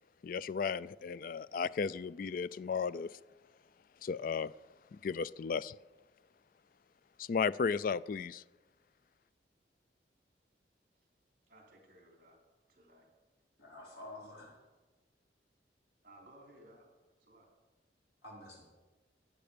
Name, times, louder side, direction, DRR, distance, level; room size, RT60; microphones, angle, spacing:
voice 1, 0.2-3.1 4.0-4.5 5.0-5.8 7.2-8.4, left 5 dB, 50° left, 18 dB, 0.3 m, -34 dB
voice 2, 11.5-12.4 12.7-13.1 16.0-16.9 17.2-17.5, right 1 dB, 50° right, 1 dB, 3.3 m, -59 dB
voice 3, 13.6-14.5 18.2-18.6, left 1 dB, 70° left, -4 dB, 4.8 m, -49 dB
15.5 x 9.6 x 5.1 m, 1.2 s
head